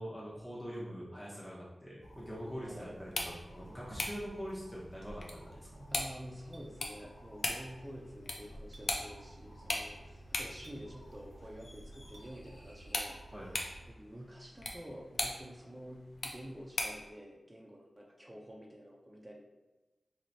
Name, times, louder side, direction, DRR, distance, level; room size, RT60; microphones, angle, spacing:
voice 1, 0.0-5.9 13.3-13.7, equal, 5° left, -6 dB, 0.9 m, -44 dB
sound 1, 2.0-13.9, right 1 dB, 85° left, 1.4 m, -55 dB
voice 2, 2.6-3.0 5.9-13.2 13.9-19.4, equal, 20° right, -2 dB, 0.6 m, -49 dB
sound 2, 3.0-17.1, left 2 dB, 70° left, 0.6 m, -41 dB
Chink clink, 6.5-6.7 8.7-8.9 10.6-10.8 12.1-12.3, right 2 dB, 80° right, 0.8 m, -57 dB
3.2 x 3.0 x 4.0 m, 1.1 s
wide cardioid pair, 75°, 0 cm